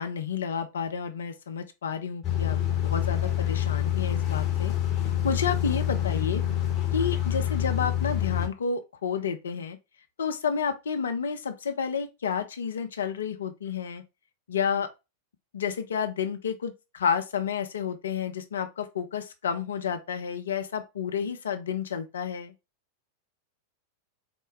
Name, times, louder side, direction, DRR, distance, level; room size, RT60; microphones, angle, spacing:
voice 1, 0.0-2.6 2.8-4.7 5.2-6.4 6.9-9.8 10.2-14.0 14.5-14.9 15.5-22.5, left 6 dB, 65° left, 0.6 m, -30 dB
sound 1, 2.2-8.5, left 11 dB, 35° left, 1.1 m, -27 dB
4.3 x 2.2 x 3.1 m
figure-of-eight pair, 90°, 0 cm